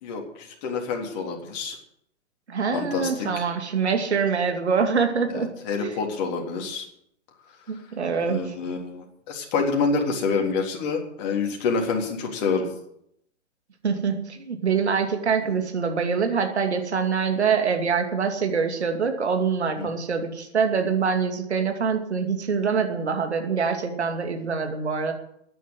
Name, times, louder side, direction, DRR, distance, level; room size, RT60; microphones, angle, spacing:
voice 1, 0.0-1.8 2.7-3.3 5.3-6.9 8.3-12.7 19.8-19.9, left 4 dB, 35° left, 1 dB, 3.6 m, -27 dB
voice 2, 2.5-5.5 5.8-6.0 7.7-8.5 13.8-25.1, right 6 dB, 60° right, 5 dB, 2.7 m, -25 dB
14.0 x 10.0 x 8.3 m, 0.76 s
figure-of-eight pair, 120°, 36 cm